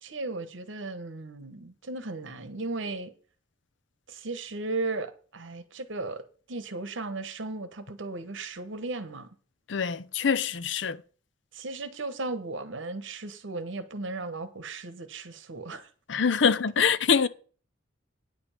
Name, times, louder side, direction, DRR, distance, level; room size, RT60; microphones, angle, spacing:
voice 1, 0.0-3.1 4.1-9.3 11.5-15.9, right 3 dB, 70° right, 1.1 m, -36 dB
voice 2, 9.7-11.0 16.1-17.3, left 6 dB, 65° left, 0.5 m, -24 dB
9.6 x 5.2 x 7.3 m
head